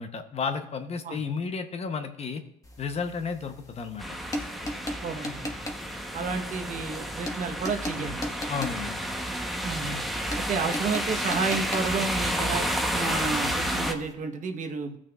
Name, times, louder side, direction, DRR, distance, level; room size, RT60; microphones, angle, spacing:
voice 1, 0.0-2.4 2.8-4.2 8.5-9.0, left 5 dB, 40° left, 8 dB, 0.9 m, -32 dB
sound 1, 2.6-14.1, left 1 dB, 20° left, 1.4 m, -40 dB
sound 2, 4.0-13.9, equal, ahead, 0.9 m, -31 dB
voice 2, 5.0-5.5 6.1-8.2 9.6-10.0 10.4-15.0, right 4 dB, 50° right, 4 dB, 1.1 m, -31 dB
16.0 x 6.2 x 2.4 m, 0.74 s
cardioid pair, 110°, 17 cm